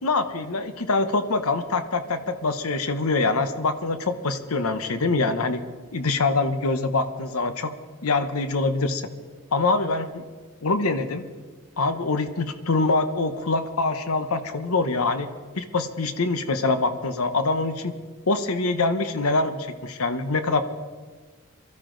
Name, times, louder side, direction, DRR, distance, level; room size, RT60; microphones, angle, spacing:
voice 1, 0.0-5.6 5.9-7.7 8.0-9.1 9.5-10.2 10.6-11.2 11.8-15.3 15.6-17.9 18.3-20.6, left 3 dB, 75° left, 10 dB, 0.9 m, -24 dB
23.0 x 14.0 x 3.9 m, 1.5 s
head